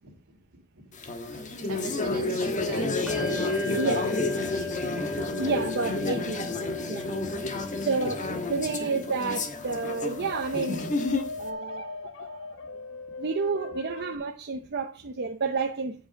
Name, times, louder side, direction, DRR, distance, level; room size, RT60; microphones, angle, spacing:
voice 1, 0.0-3.0 3.3-4.0 4.3-4.7 6.1-6.3 7.1-7.7 8.5-8.6 11.3-11.6, right 4 dB, 75° right, 2.7 m, -46 dB
sound 1, 0.9-11.4, left 2 dB, 35° left, 1.2 m, -30 dB
Bell, 3.1-13.1, left 4 dB, 5° right, 1.5 m, -40 dB
voice 2, 5.4-6.4 6.9-7.1 7.8-10.8 11.4-12.5 13.2-15.9, right 4 dB, 50° right, 0.7 m, -30 dB
sound 2, 7.9-8.9 9.8-14.2, left 3 dB, 60° left, 0.8 m, -40 dB
8.1 x 7.8 x 5.1 m
head